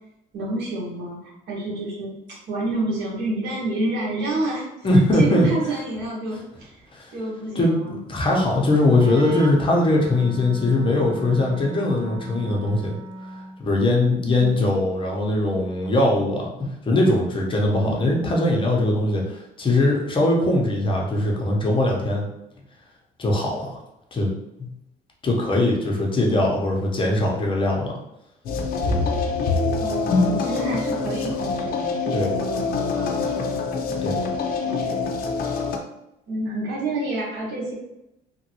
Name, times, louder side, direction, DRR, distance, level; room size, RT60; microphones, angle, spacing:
voice 1, 0.3-1.2 1.5-4.9 5.1-6.8 7.1-8.0 14.2-14.7 17.8-18.3 29.8-33.6 33.9-34.4 34.6-35.1 36.3-37.7, right 2 dB, 85° right, -4 dB, 1.3 m, -29 dB
voice 2, 4.8-5.5 6.9-7.1 7.5-12.9 13.6-22.3 23.2-23.7 24.1-24.3 24.6-24.7 25.2-28.0 28.8-29.1 32.1-32.3 34.0-34.2, left 2 dB, 30° left, -2 dB, 0.8 m, -21 dB
Wind instrument woodwind instrument, 8.8-13.6, equal, 25° right, 0.5 m, -37 dB
sound 1, 28.5-35.8, left 4 dB, 65° left, 0.5 m, -25 dB
3.0 x 2.5 x 2.9 m, 0.85 s
cardioid pair, 110°, 17 cm